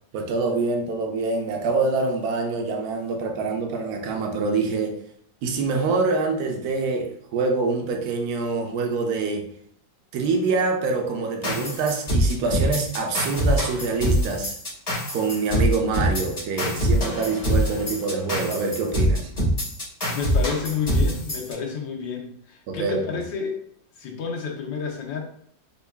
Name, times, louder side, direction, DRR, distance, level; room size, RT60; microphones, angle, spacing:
voice 1, 0.1-5.0 5.4-9.4 10.1-14.6 15.1-19.3 22.7-23.0, right 4 dB, 65° right, 3 dB, 1.0 m, -25 dB
sound 1, 11.4-21.5, equal, 30° left, 0.7 m, -24 dB
voice 2, 20.1-23.6 24.0-25.2, left 6 dB, 85° left, 0 dB, 1.5 m, -30 dB
5.4 x 2.3 x 2.2 m, 0.64 s
omnidirectional pair, 2.0 m